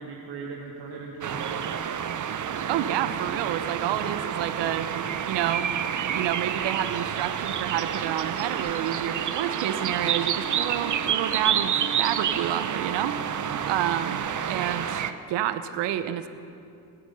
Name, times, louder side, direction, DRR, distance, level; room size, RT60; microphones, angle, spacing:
voice 1, 0.0-1.9 13.4-13.6, right 4 dB, 70° right, -2 dB, 1.7 m, -38 dB
sound 1, 1.2-15.1, right 9 dB, 45° right, 0.8 m, -29 dB
voice 2, 2.7-4.9 5.3-5.7 6.1-13.1 13.7-15.0 15.3-16.3, right 11 dB, 85° right, 11 dB, 0.9 m, -29 dB
24.0 x 8.9 x 5.5 m, 2.6 s
cardioid pair, 90°, 42 cm